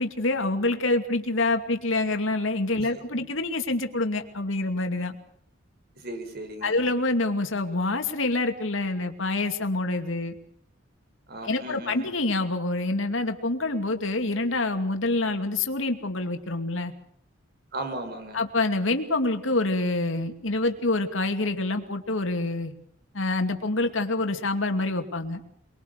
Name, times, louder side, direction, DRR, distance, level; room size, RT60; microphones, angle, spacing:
voice 1, 0.0-5.2 6.6-10.4 11.4-16.9 18.3-22.7 23.1-25.4, left 2 dB, 75° left, 6 dB, 2.6 m, -26 dB
voice 2, 5.9-6.8 11.3-12.1 17.7-18.4, right 1 dB, 50° right, 7 dB, 4.6 m, -36 dB
23.5 x 22.5 x 6.7 m, 0.66 s
head